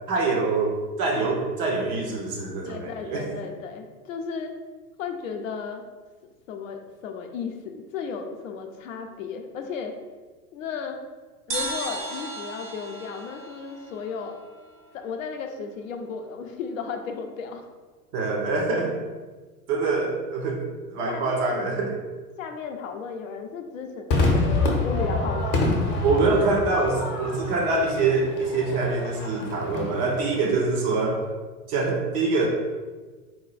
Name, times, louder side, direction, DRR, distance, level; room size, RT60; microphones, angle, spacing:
voice 1, 0.1-3.3 18.1-19.0 19.7-20.6 20.9-22.0 26.0-31.3 31.7-32.5, right 3 dB, 25° right, 0 dB, 0.5 m, -25 dB
voice 2, 2.6-4.5 5.0-5.8 6.5-9.9 10.5-11.0 11.5-14.4 14.9-17.7 19.8-20.0 21.1-21.6 22.4-25.7, left 5 dB, 55° left, 4 dB, 0.6 m, -34 dB
sound 1, 11.5-15.0, right 2 dB, 90° right, 0.9 m, -35 dB
Crowd / Fireworks, 24.1-30.6, left 2 dB, 35° left, 0.9 m, -27 dB
4.2 x 2.3 x 4.0 m, 1.4 s
figure-of-eight pair, 90°, 47 cm